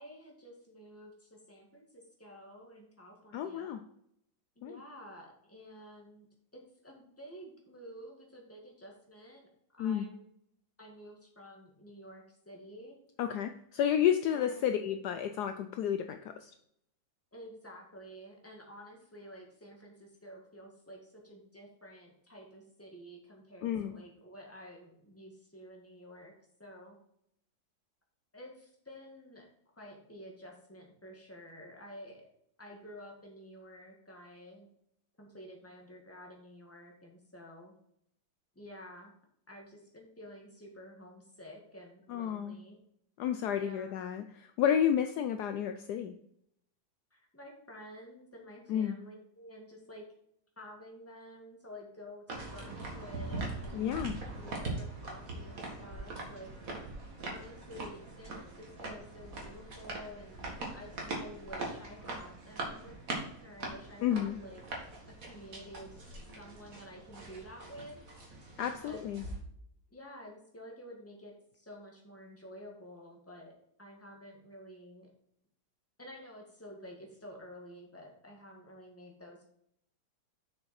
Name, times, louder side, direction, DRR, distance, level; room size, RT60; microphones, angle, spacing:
voice 1, 0.0-3.8 4.6-6.3 6.5-9.5 9.8-10.2 10.8-13.0 14.3-14.7 17.3-26.3 26.6-27.0 28.3-32.3 32.6-34.7 35.2-37.7 38.6-39.1 39.5-42.8 43.5-44.0 47.1-50.0 50.6-54.0 54.3-56.5 57.2-64.6 65.2-66.0 66.4-68.0 68.6-69.1 69.9-73.5 73.8-75.1 76.0-79.5, equal, 10° left, 0 dB, 1.8 m, -51 dB
voice 2, 3.3-3.8 4.6-4.8 9.8-10.1 13.2-16.5 23.6-24.0 42.1-42.6 43.2-46.1 48.7-49.0 53.7-54.2 64.0-64.4 68.6-69.2, left 9 dB, 75° left, 8 dB, 1.0 m, -31 dB
sound 1, 52.3-69.4, right 2 dB, 50° right, 2.2 m, -42 dB
7.1 x 6.4 x 4.3 m, 0.73 s
omnidirectional pair, 1.9 m